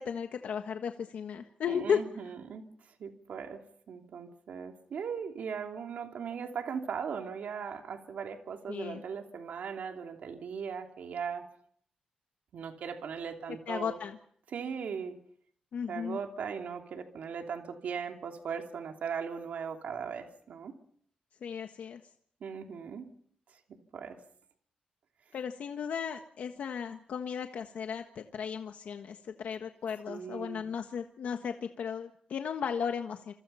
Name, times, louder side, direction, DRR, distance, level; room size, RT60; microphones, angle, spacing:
voice 1, 0.0-2.0 8.7-9.0 13.7-14.2 15.7-16.2 21.4-22.0 25.3-33.3, left 7 dB, 75° left, 6 dB, 1.5 m, -35 dB
voice 2, 1.7-2.6 3.0-11.4 12.5-14.0 14.5-15.2 15.9-20.7 22.4-23.1 23.9-24.2 30.1-30.6, right 6 dB, 70° right, 4 dB, 2.9 m, -38 dB
28.0 x 24.5 x 5.7 m, 0.64 s
wide cardioid pair, 175°, 3 cm